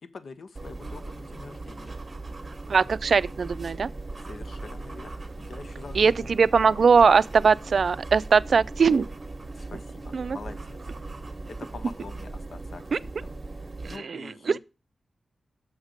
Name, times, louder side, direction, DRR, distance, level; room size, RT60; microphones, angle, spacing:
voice 1, 0.0-1.9 4.2-6.3 9.5-10.9 11.5-14.6, left 4 dB, 65° left, 0.7 m, -45 dB
sound 1, 0.6-14.0, right 2 dB, 25° right, 1.0 m, -39 dB
voice 2, 2.7-3.9 5.9-9.1 10.1-10.4 12.9-13.0 13.8-14.6, right 5 dB, 60° right, 0.3 m, -21 dB
7.2 x 5.1 x 6.5 m
wide cardioid pair, 150°, 0 cm